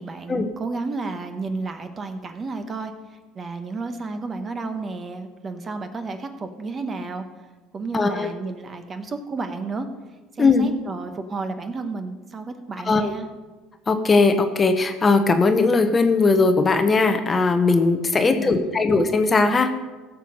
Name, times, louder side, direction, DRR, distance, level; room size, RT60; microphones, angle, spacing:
voice 1, 0.0-7.2 7.7-9.9 10.3-13.3 18.3-18.9, right 3 dB, 25° right, 8 dB, 1.0 m, -32 dB
voice 2, 7.9-8.3 10.4-10.7 12.9-13.1 13.9-19.7, left 3 dB, 20° left, 7 dB, 0.8 m, -19 dB
15.5 x 6.8 x 5.3 m, 1.2 s
cardioid pair, 135°, 0 cm